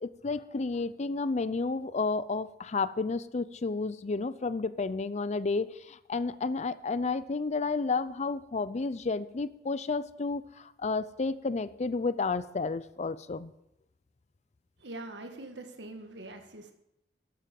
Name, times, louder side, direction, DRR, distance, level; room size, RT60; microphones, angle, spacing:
voice 1, 0.0-13.5, left 3 dB, 40° left, 16 dB, 0.5 m, -31 dB
voice 2, 14.8-16.7, right 2 dB, 90° right, 5 dB, 1.6 m, -43 dB
12.0 x 8.7 x 5.3 m, 0.81 s
head